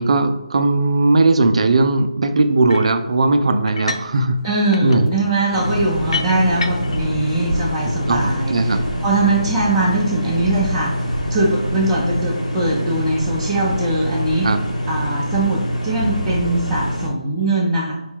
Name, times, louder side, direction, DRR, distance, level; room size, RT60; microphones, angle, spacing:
voice 1, 0.0-4.4 4.8-5.1 8.1-8.8 14.4-14.6, right 2 dB, 55° right, 8 dB, 0.5 m, -17 dB
sound 1, 2.7-3.0 3.7-4.2 4.4-7.1, left 4 dB, 50° left, 0.4 m, -30 dB
voice 2, 4.4-14.5 14.9-17.9, right 2 dB, 5° right, -11 dB, 0.6 m, -21 dB
sound 2, 5.5-17.1, equal, 80° left, 1.3 m, -24 dB
sound 3, 7.0-8.4 8.7-9.0 9.4-9.5 10.6-14.6 14.9-15.1 15.5-15.6, right 2 dB, 90° right, 0.9 m, -33 dB
4.5 x 2.3 x 4.5 m, 0.97 s
figure-of-eight pair, 165°, 4 cm